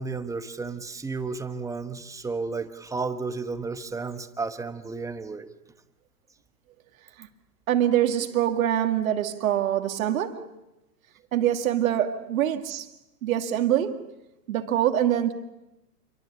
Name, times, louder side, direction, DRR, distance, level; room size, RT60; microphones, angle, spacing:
voice 1, 0.0-5.5, right 4 dB, 5° right, 1.1 m, -32 dB
voice 2, 7.7-10.4 11.3-12.9 13.2-14.0 14.5-15.3, right 11 dB, 60° right, 2.3 m, -24 dB
28.5 x 23.5 x 7.1 m
hypercardioid pair, 120°, 47 cm